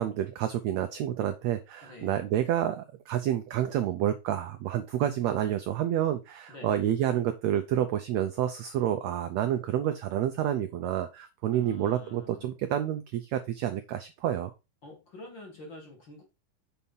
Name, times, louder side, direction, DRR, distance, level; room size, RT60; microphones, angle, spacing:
voice 1, 0.0-14.5, right 11 dB, 85° right, 1.5 m, -29 dB
voice 2, 1.8-2.2 6.5-6.9 11.5-12.5 14.8-16.2, left 2 dB, 40° left, 2.2 m, -47 dB
6.9 x 4.3 x 5.4 m
omnidirectional pair, 3.9 m